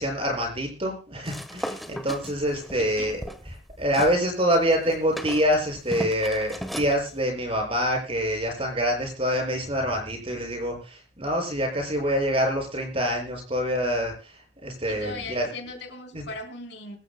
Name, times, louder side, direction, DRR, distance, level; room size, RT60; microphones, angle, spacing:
voice 1, 0.0-3.2 3.8-15.5 16.1-16.2, equal, 30° right, 2 dB, 6.6 m, -26 dB
sound 1, 1.2-4.2 4.5-7.0, equal, ahead, 1.2 m, -36 dB
voice 2, 2.5-3.1 14.9-17.0, left 3 dB, 75° left, 4 dB, 4.3 m, -39 dB
23.5 x 14.0 x 2.2 m, 0.34 s
head